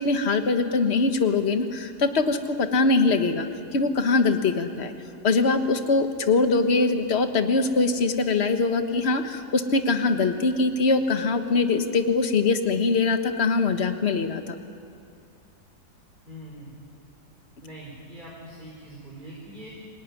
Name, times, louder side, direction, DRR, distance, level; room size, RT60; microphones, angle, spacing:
voice 1, 0.0-3.5 3.7-4.9 5.2-14.5, left 3 dB, 40° left, 7 dB, 1.5 m, -22 dB
voice 2, 16.3-16.7 17.6-19.7, right 1 dB, 25° right, -4 dB, 4.8 m, -42 dB
27.5 x 18.0 x 9.8 m, 2.4 s
omnidirectional pair, 1.9 m